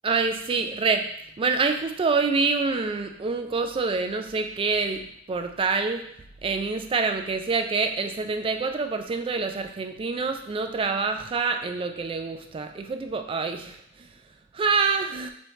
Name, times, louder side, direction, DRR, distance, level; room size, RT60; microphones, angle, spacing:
voice 1, 0.0-1.1 1.4-6.1 6.4-13.8 14.5-15.3, right 4 dB, 25° right, 6 dB, 0.3 m, -26 dB
4.7 x 2.7 x 3.1 m, 0.73 s
head